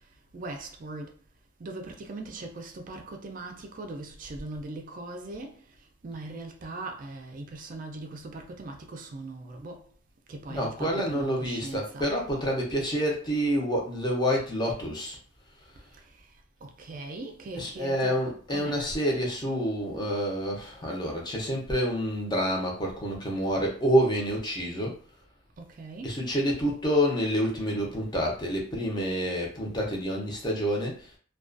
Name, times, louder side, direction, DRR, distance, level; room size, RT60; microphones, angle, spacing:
voice 1, 0.3-1.1 1.6-5.6 6.0-9.9 10.3-12.2 15.9-16.3 16.6-18.9 25.6-26.2, right 2 dB, 45° right, 0.4 m, -40 dB
voice 2, 10.5-15.2 17.5-25.0 26.0-31.1, equal, 25° left, 0.6 m, -28 dB
2.3 x 2.2 x 2.4 m
head